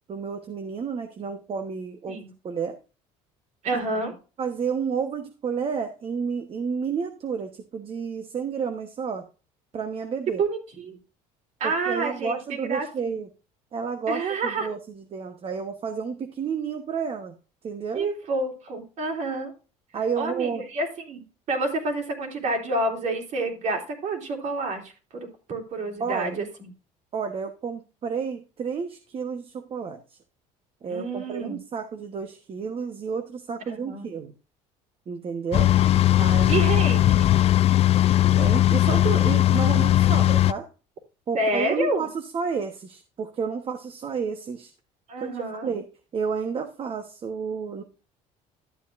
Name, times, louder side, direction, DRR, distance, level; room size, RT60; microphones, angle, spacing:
voice 1, 0.1-2.8 4.4-9.3 9.7-10.4 11.6-13.3 13.7-17.3 17.6-18.1 19.9-20.7 26.0-26.4 27.1-30.0 30.8-34.3 35.1-35.7 36.2-36.7 38.3-40.7 41.3-44.7 45.2-45.3 45.6-45.9 46.1-47.8, right 6 dB, 40° right, 7 dB, 1.1 m, -31 dB
voice 2, 3.6-4.2 10.3-11.0 11.6-12.4 12.7-13.2 14.1-14.7 17.9-19.5 20.2-26.5 30.9-31.6 33.7-34.1 36.5-37.3 41.3-42.1 45.1-45.7, right 2 dB, 55° right, 3 dB, 3.6 m, -28 dB
sound 1, 35.5-40.5, left 13 dB, 45° left, 0.4 m, -19 dB
12.0 x 8.1 x 2.6 m, 0.33 s
cardioid pair, 105°, 15 cm